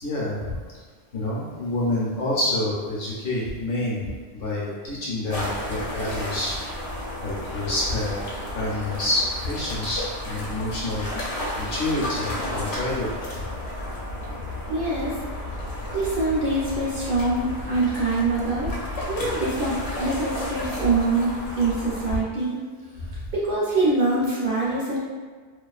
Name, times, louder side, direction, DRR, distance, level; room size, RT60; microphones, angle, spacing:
voice 1, 0.0-0.6 1.1-4.0 4.3-6.6 7.2-8.2 8.5-13.4, left 1 dB, 60° left, -6 dB, 0.8 m, -28 dB
sound 1, 5.3-22.2, left 1 dB, 85° left, 0.9 m, -32 dB
voice 2, 14.7-15.2 15.9-18.7 19.1-19.7 20.0-22.6 23.3-25.0, right 2 dB, 55° right, -8 dB, 0.5 m, -24 dB
2.3 x 2.3 x 2.3 m, 1.5 s
omnidirectional pair, 1.2 m